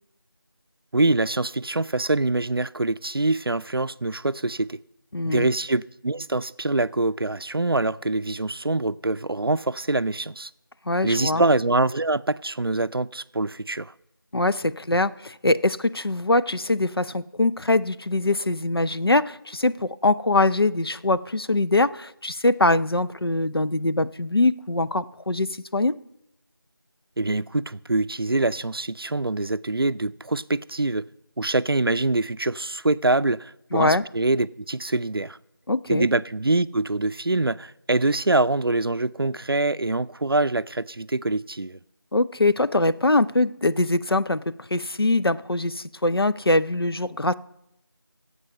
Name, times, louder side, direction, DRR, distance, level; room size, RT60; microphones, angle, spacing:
voice 1, 0.9-4.8 5.2-10.5 11.0-13.9 27.2-31.1 31.4-35.4 35.9-41.8, right 2 dB, 75° right, 0.4 m, -24 dB
voice 2, 5.1-5.5 10.9-11.4 14.3-26.0 33.7-34.0 35.7-36.1 42.1-44.4 44.7-47.3, left 2 dB, 80° left, 0.6 m, -23 dB
16.5 x 8.1 x 5.4 m
figure-of-eight pair, 180°, 12 cm